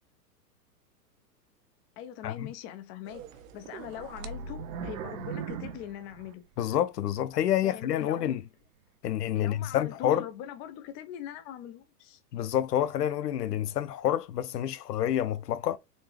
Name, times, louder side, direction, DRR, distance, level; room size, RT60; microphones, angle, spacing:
voice 1, 2.0-3.2 3.5-6.4 7.6-8.4 9.4-12.2, left 10 dB, 25° left, 0.6 m, -42 dB
sound 1, 3.1-6.8 7.3-7.4 8.0-8.1, right 6 dB, 55° right, 0.8 m, -40 dB
voice 2, 6.6-8.4 9.0-10.2 12.3-15.8, left 11 dB, 75° left, 0.7 m, -28 dB
4.1 x 2.8 x 3.2 m
hypercardioid pair, 120°, 48 cm